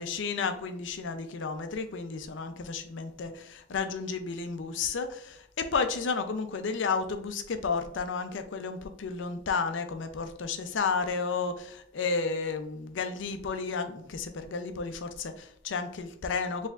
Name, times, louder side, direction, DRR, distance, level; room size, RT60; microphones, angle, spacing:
voice 1, 0.0-16.7, left 4 dB, 70° left, 8 dB, 0.5 m, -32 dB
4.5 x 3.3 x 2.4 m, 0.66 s
head